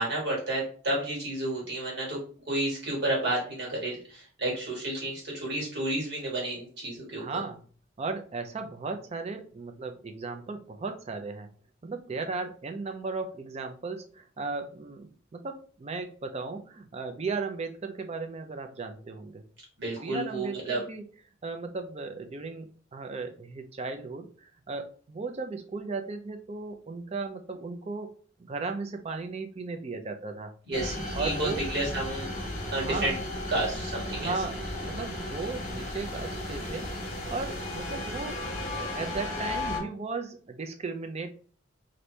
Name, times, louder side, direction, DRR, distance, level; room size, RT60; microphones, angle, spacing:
voice 1, 0.0-2.2 2.5-7.2 19.8-20.8 30.7-32.3 32.7-33.2 33.5-34.3, right 1 dB, 55° right, -3 dB, 1.6 m, -31 dB
voice 2, 7.2-7.6 8.0-11.5 11.8-19.4 20.0-21.0 21.4-28.1 28.4-30.5 31.1-31.7 32.7-33.1 34.1-36.9 37.3-41.3, right 4 dB, 30° right, 6 dB, 0.4 m, -36 dB
sound 1, 30.7-39.8, left 1 dB, 35° left, 0.9 m, -35 dB
2.8 x 2.6 x 3.2 m, 0.42 s
head